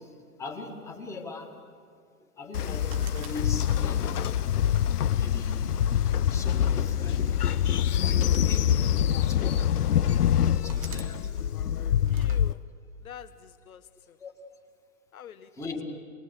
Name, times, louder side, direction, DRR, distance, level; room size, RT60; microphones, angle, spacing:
voice 1, 0.0-1.5 2.2-4.4 5.1-5.8 6.3-7.5 7.9-8.7 9.2-9.7 10.6-11.3 14.2-14.3 15.5-15.8, left 3 dB, 5° left, 1.8 m, -40 dB
Train, 2.5-12.5, left 9 dB, 85° left, 0.8 m, -25 dB
sound 1, 2.9-4.0 4.6-5.8 6.7-7.0 8.0-9.1 9.8-9.9 10.7-11.1 12.1-12.4, right 6 dB, 25° right, 0.8 m, -48 dB
voice 2, 12.1-12.6 13.0-14.2 15.1-15.7, left 9 dB, 65° left, 1.6 m, -47 dB
27.5 x 20.5 x 8.1 m
hypercardioid pair, 160°, 45 cm